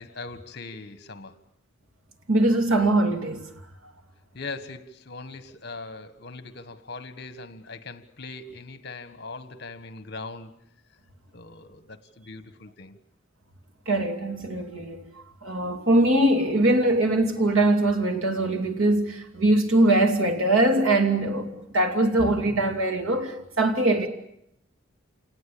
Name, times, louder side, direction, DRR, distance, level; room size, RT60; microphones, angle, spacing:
voice 1, 0.0-1.4 4.3-10.5 11.3-13.0, left 3 dB, 55° left, 1.6 m, -40 dB
voice 2, 2.3-3.5 13.9-24.1, right 1 dB, 85° right, 2.9 m, -22 dB
28.5 x 19.0 x 8.6 m
head